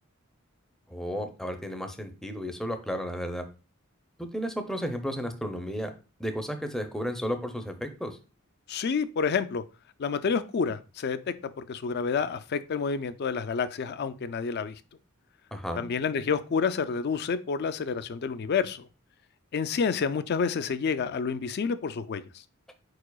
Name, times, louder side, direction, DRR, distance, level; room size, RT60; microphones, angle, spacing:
voice 1, 0.9-3.5 4.2-5.9 6.2-8.2 15.5-15.9, equal, ahead, 5 dB, 0.6 m, -33 dB
voice 2, 8.7-9.6 10.0-14.7 15.8-18.9 19.5-22.2, left 5 dB, 55° left, 13 dB, 0.4 m, -29 dB
4.7 x 4.7 x 2.3 m, 0.32 s
head